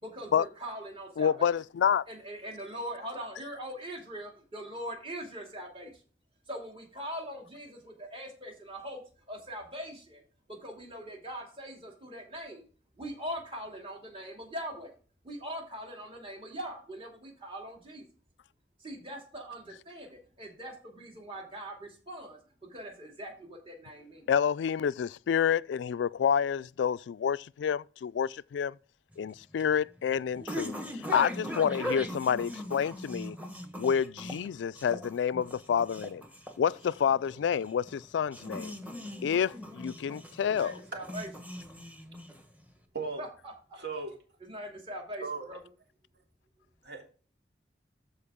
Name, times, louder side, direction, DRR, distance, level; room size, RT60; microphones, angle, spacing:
voice 1, 0.0-1.5 2.1-6.0 6.5-9.0 9.3-10.2 10.5-12.7 13.0-14.9 15.2-18.1 18.8-24.3 40.4-41.3 43.2-43.8 44.4-45.6, equal, 30° right, 2.6 m, -42 dB
voice 2, 1.2-2.0 24.3-28.7 29.2-33.4 33.8-36.2 36.6-38.8 39.2-40.8, left 7 dB, 85° left, 0.3 m, -28 dB
sound 1, 29.1-42.7, equal, 10° right, 1.3 m, -40 dB
voice 3, 43.8-44.1 45.2-45.5 46.8-47.0, right 4 dB, 65° right, 2.7 m, -36 dB
13.5 x 4.6 x 3.6 m
head